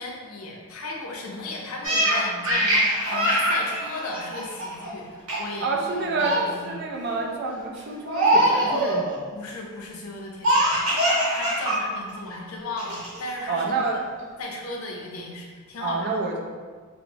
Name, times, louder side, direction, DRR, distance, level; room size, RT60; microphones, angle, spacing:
voice 1, 0.0-5.7 6.0-6.7 9.3-10.9 11.3-14.0 14.4-16.3, left 2 dB, 75° left, -1 dB, 0.5 m, -36 dB
Laughter, 1.8-4.9 5.3-5.6 5.9-6.5 7.0-7.3 8.1-9.0 10.4-11.8 12.1-12.2 12.8-13.3, right 1 dB, 75° right, 0.8 m, -23 dB
voice 2, 5.6-9.2 13.5-14.0 15.8-16.4, right 3 dB, 50° right, 0 dB, 0.4 m, -28 dB
2.9 x 2.0 x 2.6 m, 1.6 s
head